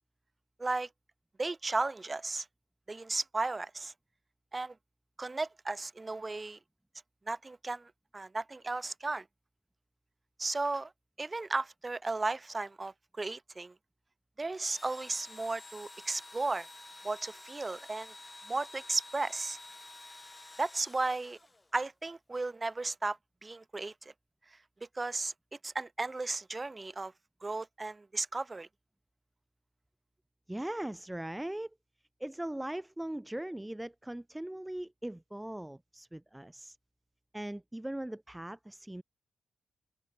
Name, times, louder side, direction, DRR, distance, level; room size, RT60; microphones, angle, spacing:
voice 1, 1.4-2.5 2.9-3.9 4.5-4.7 5.2-6.6 7.3-9.2 10.4-10.9 11.2-13.7 14.4-16.7 17.0-18.1 18.5-19.6 20.6-21.4 21.7-24.1 24.9-25.3 25.6-27.1 27.4-28.7, right 3 dB, 30° right, 1.0 m, -35 dB
Engine / Drill, 14.5-21.9, left 2 dB, 20° left, 2.4 m, -50 dB
voice 2, 30.5-31.7 32.2-36.8 37.3-39.0, right 1 dB, 10° right, 0.6 m, -39 dB
open air
cardioid pair, 60°, 0 cm